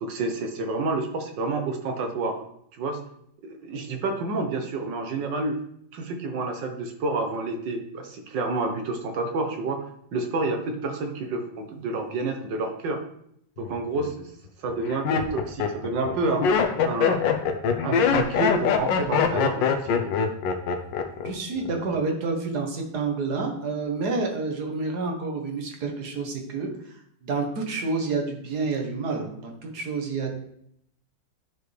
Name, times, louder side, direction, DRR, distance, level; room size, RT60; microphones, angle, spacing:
voice 1, 0.0-2.4 2.7-3.0 3.4-5.6 5.9-9.8 10.1-13.0 13.6-14.3 14.6-16.5 16.8-17.2 17.8-20.1, right 3 dB, 75° right, 5 dB, 1.7 m, -29 dB
Laughter, 13.6-14.1 14.7-21.3 21.6-22.1, left 6 dB, 85° left, 1.4 m, -23 dB
voice 2, 21.2-26.7 27.2-30.3, right 4 dB, 60° right, 3 dB, 1.7 m, -29 dB
11.0 x 4.7 x 3.3 m, 0.71 s
omnidirectional pair, 2.0 m